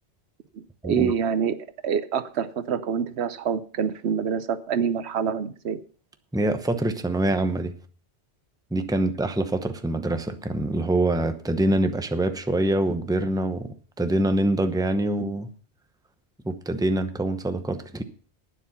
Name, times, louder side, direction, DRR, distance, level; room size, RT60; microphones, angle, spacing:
voice 1, 0.5-1.6 1.8-5.8, right 7 dB, 75° right, 1.0 m, -26 dB
voice 2, 6.3-7.7 8.7-13.7 14.0-15.5 16.4-18.0, right 1 dB, 5° right, 0.8 m, -25 dB
11.0 x 9.5 x 5.7 m
omnidirectional pair, 1.1 m